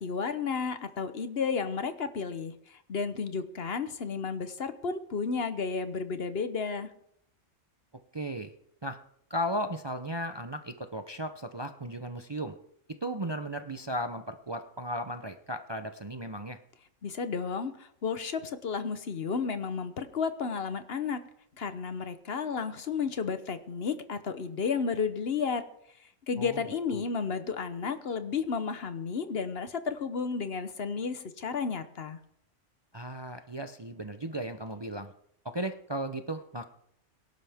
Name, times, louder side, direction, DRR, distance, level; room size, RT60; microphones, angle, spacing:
voice 1, 0.0-6.9 17.0-21.2 21.6-25.6 26.3-32.2, left 5 dB, 55° left, 11 dB, 1.1 m, -32 dB
voice 2, 8.1-8.5 8.8-9.0 9.3-12.6 13.0-16.6 26.4-26.6 26.9-27.0 32.9-35.1 35.4-36.7, equal, 25° right, 7 dB, 0.6 m, -35 dB
23.5 x 11.5 x 3.5 m, 0.73 s
omnidirectional pair, 1.3 m